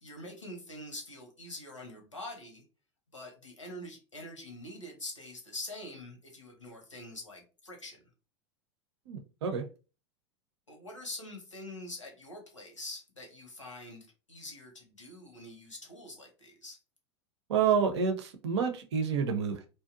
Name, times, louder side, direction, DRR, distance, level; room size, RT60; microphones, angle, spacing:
voice 1, 0.0-2.6 3.1-8.0 10.7-16.8, left 1 dB, 90° left, 2 dB, 0.8 m, -45 dB
voice 2, 9.1-9.7 17.5-19.7, right 6 dB, 65° right, 7 dB, 0.6 m, -29 dB
2.7 x 2.2 x 2.4 m, 0.34 s
figure-of-eight pair, 85°, 15 cm